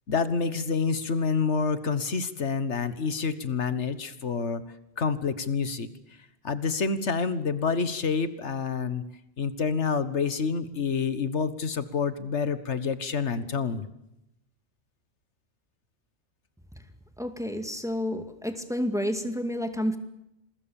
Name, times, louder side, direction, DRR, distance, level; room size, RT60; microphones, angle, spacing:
voice 1, 0.1-4.6 5.0-5.9 6.4-9.0 9.4-13.9, left 5 dB, 80° left, 13 dB, 1.7 m, -28 dB
voice 2, 17.2-20.0, equal, 5° right, 7 dB, 2.2 m, -30 dB
27.5 x 21.5 x 7.1 m, 0.85 s
omnidirectional pair, 1.2 m